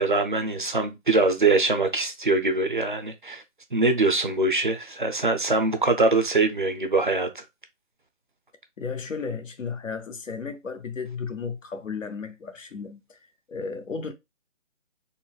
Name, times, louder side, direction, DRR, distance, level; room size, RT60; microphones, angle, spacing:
voice 1, 0.0-3.4 3.7-7.4, right 3 dB, 45° right, 0.4 m, -23 dB
voice 2, 8.8-13.2 13.5-14.1, left 5 dB, 85° left, 0.8 m, -34 dB
3.9 x 2.0 x 2.2 m
figure-of-eight pair, 155°, 38 cm